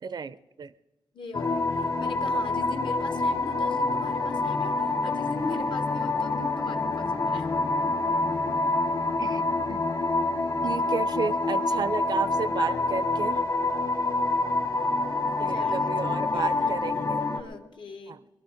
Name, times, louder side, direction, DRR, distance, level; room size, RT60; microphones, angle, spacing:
voice 1, 0.0-0.7 9.2-9.4 9.7-9.8 10.6-13.4 15.4-17.3 18.1-18.2, right 5 dB, 55° right, 17 dB, 0.4 m, -32 dB
voice 2, 1.1-7.5 12.6-12.9 15.5-16.7 17.2-18.2, left 3 dB, 70° left, 9 dB, 1.2 m, -40 dB
sound 1, 1.3-17.4, left 3 dB, 45° left, 1.2 m, -27 dB
20.0 x 11.5 x 5.0 m, 1.0 s
wide cardioid pair, 150°, 8 cm